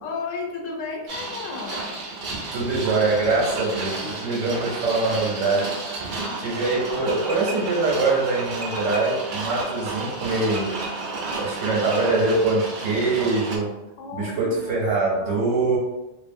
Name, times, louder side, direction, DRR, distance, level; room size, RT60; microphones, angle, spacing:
voice 1, 0.0-1.9 14.0-14.8 15.2-15.6, left 4 dB, 80° left, 1 dB, 0.9 m, -33 dB
sound 1, 1.1-13.6, right 3 dB, 60° right, 0.5 m, -32 dB
voice 2, 2.5-5.7 6.4-10.7 11.3-13.7 14.1-15.8, right 3 dB, 80° right, -3 dB, 1.0 m, -23 dB
2.4 x 2.4 x 2.5 m, 1.0 s
omnidirectional pair, 1.3 m